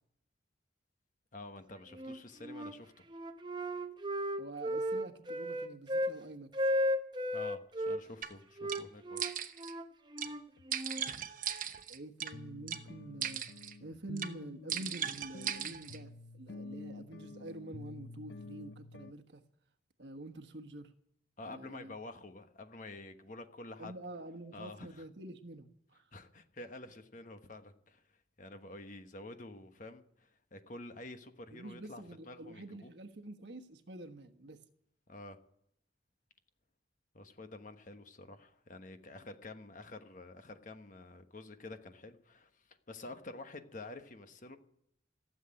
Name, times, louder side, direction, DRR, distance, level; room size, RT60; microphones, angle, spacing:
voice 1, 1.3-2.9 7.3-9.2 21.4-23.9 24.5-25.0 26.1-32.9 35.1-35.4 37.1-44.6, left 2 dB, 45° left, 8 dB, 1.2 m, -49 dB
Wind instrument woodwind instrument, 1.9-2.8 3.1-6.2 6.5-8.0 8.6-11.1, equal, 25° right, 0.8 m, -35 dB
voice 2, 4.4-6.5 11.9-13.4 13.8-19.4 20.0-20.9 21.4-21.9 23.8-26.1 31.5-34.6, right 2 dB, 65° right, 7 dB, 1.4 m, -47 dB
sound 1, 8.2-8.3 8.7-8.8 9.2-9.7 10.2-10.3 10.7-12.3 12.7-12.8 13.2-13.7 14.2-14.3 14.7-16.0, right 9 dB, 45° right, 1.0 m, -38 dB
sound 2, 10.6-10.7 11.1-11.2 11.7-11.8 12.3-19.1, left 3 dB, 60° left, 0.5 m, -49 dB
15.5 x 7.8 x 9.9 m, 0.74 s
head